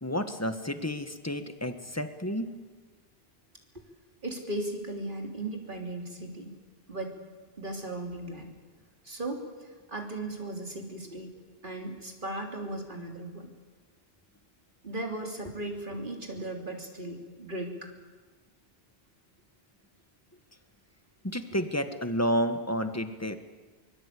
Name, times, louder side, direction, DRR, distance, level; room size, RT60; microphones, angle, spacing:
voice 1, 0.0-2.5 21.2-23.4, equal, 15° left, 8 dB, 1.5 m, -30 dB
voice 2, 4.2-6.5 6.9-7.1 7.6-8.5 9.0-11.3 11.6-13.5 14.8-17.9, right 1 dB, 55° right, 2 dB, 3.4 m, -37 dB
24.0 x 22.0 x 8.5 m, 1.4 s
omnidirectional pair, 1.1 m